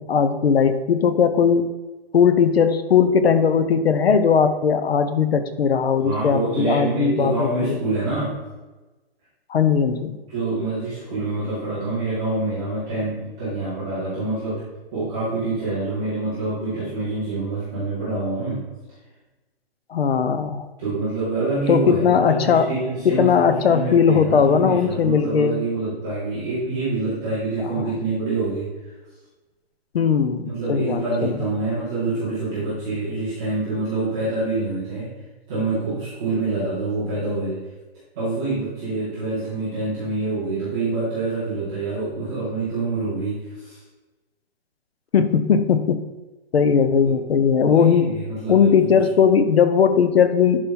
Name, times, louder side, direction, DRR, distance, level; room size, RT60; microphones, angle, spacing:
voice 1, 0.0-1.7 2.1-7.8 9.5-10.2 19.9-20.7 21.7-22.7 23.0-25.5 29.9-31.3 45.1-46.0 46.5-48.1 48.5-50.6, left 6 dB, 70° left, 10 dB, 0.9 m, -18 dB
voice 2, 6.0-8.4 10.3-14.6 14.9-18.7 20.8-28.9 30.4-35.1 35.5-37.6 38.1-43.8 47.0-47.1 47.7-49.1, right 3 dB, 5° right, -14 dB, 0.4 m, -26 dB
11.0 x 4.5 x 3.9 m, 1.2 s
hypercardioid pair, 170°, 31 cm